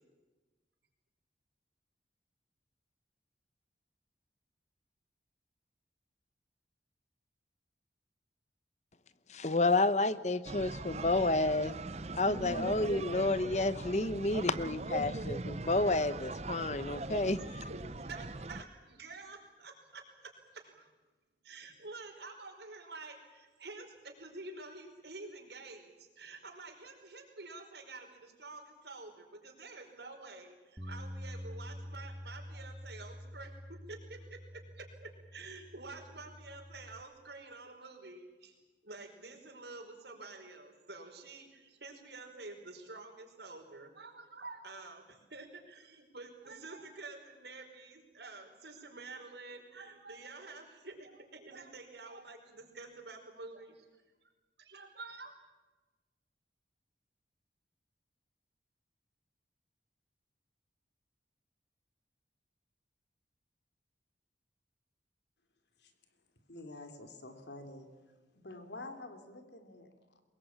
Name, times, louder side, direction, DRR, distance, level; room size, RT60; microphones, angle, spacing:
voice 1, 9.3-11.7 12.2-17.4, left 2 dB, 40° left, 14 dB, 0.9 m, -30 dB
sound 1, 10.5-18.6, right 2 dB, 35° right, 0.7 m, -41 dB
voice 2, 17.4-20.9 21.4-38.5 38.8-53.9 54.6-55.4, right 3 dB, 70° right, 3 dB, 5.1 m, -49 dB
Bass guitar, 30.8-37.0, equal, 5° right, 1.5 m, -47 dB
voice 3, 66.5-70.2, left 2 dB, 75° left, 7 dB, 3.1 m, -49 dB
23.0 x 21.5 x 8.8 m, 1.2 s
head